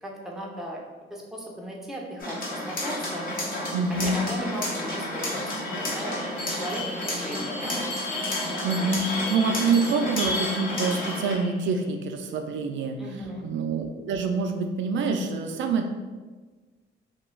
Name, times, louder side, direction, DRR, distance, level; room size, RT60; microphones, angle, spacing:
voice 1, 0.0-0.8 1.1-3.2 3.9-7.8 8.8-8.9 13.0-13.5, equal, ahead, -2 dB, 0.5 m, -37 dB
sound 1, 2.2-11.3, left 1 dB, 50° left, 0.9 m, -31 dB
voice 2, 3.7-4.2 8.6-13.0 13.4-15.9, right 4 dB, 70° right, 4 dB, 0.4 m, -26 dB
sound 2, 5.6-11.7, left 3 dB, 85° left, 0.5 m, -36 dB
Bell, 6.4-10.9, left 1 dB, 70° left, 1.1 m, -40 dB
2.4 x 2.2 x 3.1 m, 1.3 s
cardioid pair, 90°, 20 cm